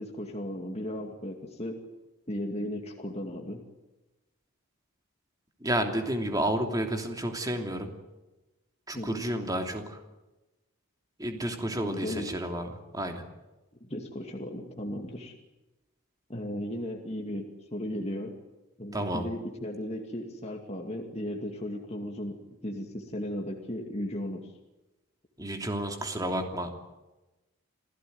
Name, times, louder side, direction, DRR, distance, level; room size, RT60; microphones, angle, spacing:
voice 1, 0.0-1.8 2.3-3.6 8.9-9.2 11.8-12.3 13.8-15.3 16.3-18.3 18.8-24.5, left 1 dB, 30° left, 2 dB, 2.4 m, -36 dB
voice 2, 5.6-7.9 8.9-10.0 11.2-13.2 18.9-19.3 25.4-26.7, right 1 dB, 15° right, 4 dB, 3.0 m, -31 dB
28.0 x 16.0 x 9.6 m, 1.1 s
head